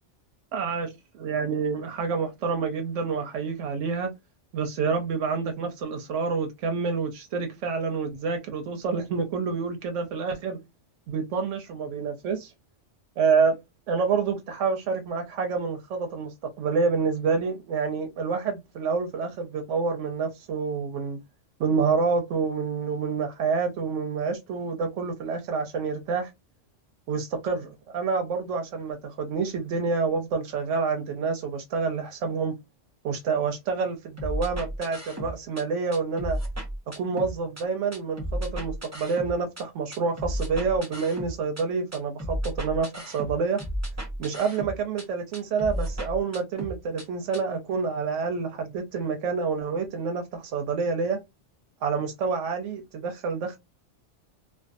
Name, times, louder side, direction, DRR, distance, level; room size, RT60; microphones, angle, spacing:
voice 1, 0.5-0.9 1.2-4.1 4.5-10.6 11.1-12.5 13.2-13.6 13.9-21.2 21.6-26.3 27.1-32.5 33.0-36.4 37.0-43.6 44.2-51.2 51.8-53.6, right 5 dB, 85° right, 0.9 m, -28 dB
sound 1, 34.2-35.6 35.9-37.6 37.9-39.6 39.9-41.6 41.9-45.1 45.3-47.1 47.3-47.4, equal, 20° right, 0.5 m, -33 dB
2.5 x 2.3 x 2.4 m
omnidirectional pair, 1.2 m